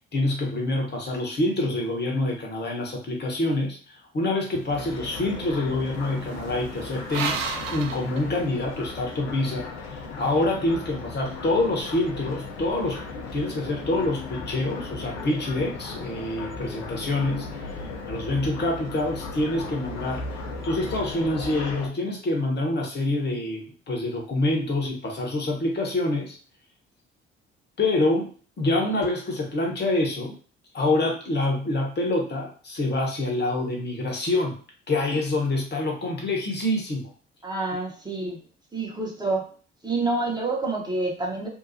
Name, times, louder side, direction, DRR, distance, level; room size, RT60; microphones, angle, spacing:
voice 1, 0.1-7.4 7.7-17.7 18.0-20.2 20.6-26.4 27.8-28.3 28.6-30.4 30.7-34.6 34.9-37.1, left 2 dB, 35° left, 0 dB, 1.1 m, -26 dB
sound 1, 4.5-8.9, right 5 dB, 75° right, 0.5 m, -35 dB
sound 2, 4.7-21.9, left 3 dB, 55° left, 0.8 m, -36 dB
voice 2, 37.4-38.4 38.7-39.5 39.8-41.5, right 2 dB, 15° right, -1 dB, 1.0 m, -27 dB
2.8 x 2.2 x 2.7 m, 0.40 s
figure-of-eight pair, 45°, 31 cm